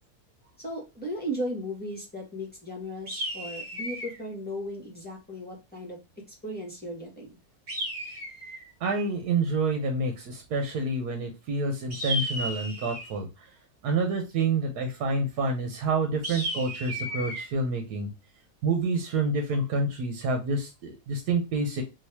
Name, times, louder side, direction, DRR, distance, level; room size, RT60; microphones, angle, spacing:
voice 1, 0.6-6.0 6.4-7.4, equal, 5° left, -3 dB, 1.2 m, -36 dB
sound 1, 3.1-4.2 7.7-8.7 11.9-13.2 16.2-17.5, equal, 45° right, 1.4 m, -34 dB
voice 2, 8.8-13.3 13.8-18.1 18.6-21.8, right 3 dB, 80° right, 4 dB, 1.3 m, -28 dB
3.9 x 2.8 x 2.8 m, 0.26 s
omnidirectional pair, 1.7 m